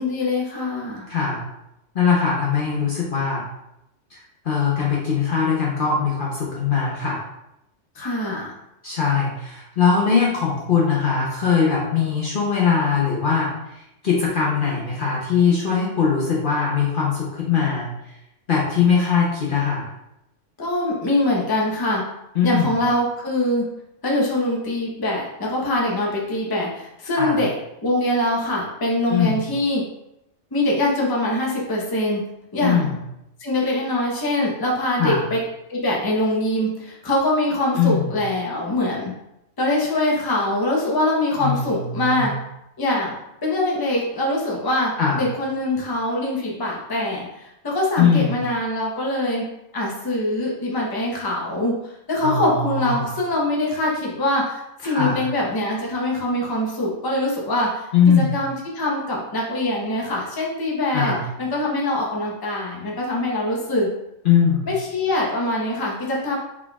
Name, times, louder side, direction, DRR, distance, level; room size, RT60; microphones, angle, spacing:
voice 1, 0.0-1.1 7.9-8.5 20.6-22.0 22.4-23.7 24.0-27.5 27.8-29.8 30.5-32.3 32.5-33.0 33.4-35.4 35.7-39.1 39.6-42.3 42.8-43.1 43.4-63.9 64.7-66.4, left 1 dB, 20° left, -3 dB, 0.8 m, -23 dB
voice 2, 1.1-1.4 1.9-3.4 4.1-4.2 4.4-7.2 8.8-13.5 14.0-17.9 18.5-19.9 22.4-22.7 27.1-27.4 29.1-29.4 32.6-32.9 35.0-35.2 37.8-38.1 41.4-42.3 45.0-45.2 48.0-48.3 52.2-53.0 54.8-55.2 57.9-58.3 60.9-61.2 64.2-64.7, left 6 dB, 50° left, -4 dB, 0.8 m, -21 dB
4.7 x 4.1 x 2.3 m, 0.85 s
omnidirectional pair, 1.3 m